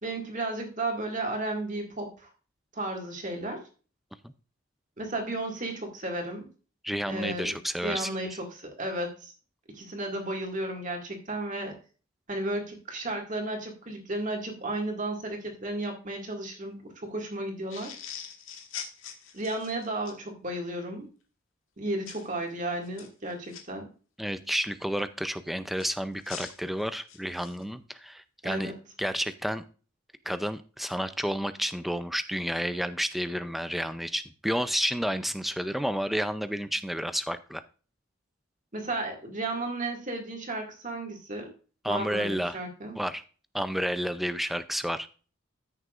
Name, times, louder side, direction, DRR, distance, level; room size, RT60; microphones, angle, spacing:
voice 1, 0.0-2.3 2.7-3.7 5.0-6.5 7.1-9.3 9.7-11.7 12.3-17.9 19.3-21.1 21.8-23.9 28.4-28.7 38.7-41.5 41.8-43.0, right 2 dB, 40° right, 1 dB, 2.1 m, -33 dB
voice 2, 6.8-8.1 24.2-28.7 29.0-29.6 30.3-37.6 41.8-42.6 42.9-43.2 43.5-45.1, equal, ahead, 11 dB, 0.4 m, -30 dB
sound 1, 17.7-20.2 22.1-22.3 22.8-23.6 25.8-27.6, left 8 dB, 75° left, 1.5 m, -42 dB
13.5 x 6.5 x 2.5 m, 0.37 s
head